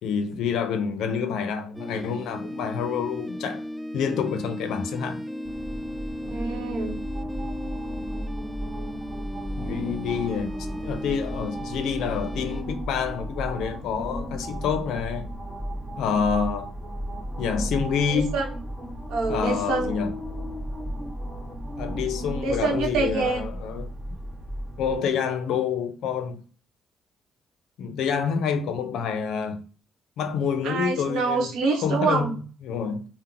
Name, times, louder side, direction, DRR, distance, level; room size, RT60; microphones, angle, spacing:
voice 1, 0.0-3.6 3.9-5.2 9.6-15.4 16.0-16.7 17.4-18.4 19.3-20.1 21.8-23.9 24.8-26.4 27.8-29.7 30.2-31.5 31.8-33.1, left 6 dB, 85° left, 0.5 m, -28 dB
sound 1, 1.7-12.6, equal, ahead, 0.3 m, -35 dB
sound 2, 5.4-25.0, equal, 25° right, 1.0 m, -34 dB
voice 2, 6.2-7.0 18.1-18.5 19.1-20.0 22.4-23.5 30.6-32.3, right 4 dB, 90° right, 0.8 m, -26 dB
2.8 x 2.0 x 3.7 m
cardioid pair, 90°, 0 cm